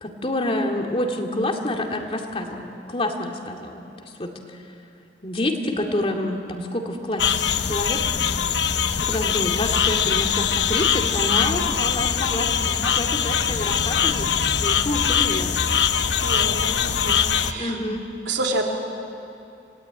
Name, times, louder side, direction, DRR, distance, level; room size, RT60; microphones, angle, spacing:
voice 1, 0.0-3.8 4.2-4.6 5.2-8.0 9.0-15.5 17.6-18.0, left 1 dB, 30° left, 2 dB, 2.3 m, -28 dB
sound 1, 7.2-17.5, left 7 dB, 80° left, 0.9 m, -22 dB
voice 2, 16.2-17.8 18.3-18.6, right 2 dB, 80° right, 1 dB, 3.3 m, -28 dB
26.5 x 19.0 x 9.4 m, 2.7 s
head